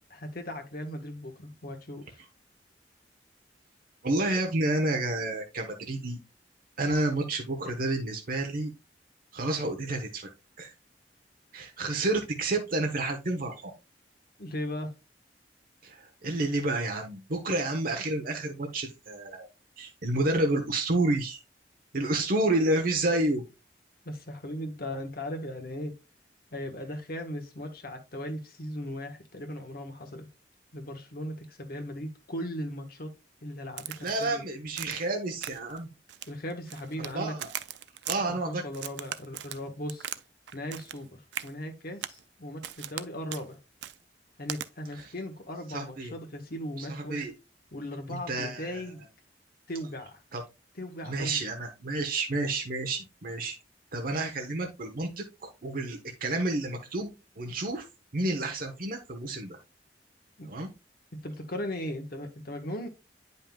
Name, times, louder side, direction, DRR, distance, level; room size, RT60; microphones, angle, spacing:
voice 1, 0.1-2.2 14.4-14.9 24.0-25.9 26.5-30.3 30.7-33.1 33.4-34.4 36.3-37.3 38.2-40.1 40.5-43.6 44.4-47.2 47.7-49.0 49.7-50.2 50.8-51.4 60.4-60.5 61.1-62.9, left 1 dB, 55° left, 1.2 m, -38 dB
voice 2, 4.0-6.2 6.8-8.7 9.3-10.3 10.6-10.7 11.5-13.7 15.8-19.5 19.8-21.4 21.9-23.4 34.0-35.9 37.0-37.5 38.1-38.6 45.7-46.1 46.8-47.3 48.1-48.8 50.3-50.4 51.0-53.6 53.9-57.8 58.1-59.6 60.5-60.7, right 2 dB, 55° right, 1.0 m, -30 dB
Crack, 33.8-34.3 34.8-35.1 35.4-35.8 36.1-37.1 37.4-38.2 38.7-40.2 40.5-41.0 41.3-41.5 42.0-42.2 42.6-43.0 43.3-43.5 43.8-44.0 44.5-44.7, right 11 dB, 70° right, 0.4 m, -38 dB
8.9 x 5.4 x 2.3 m
head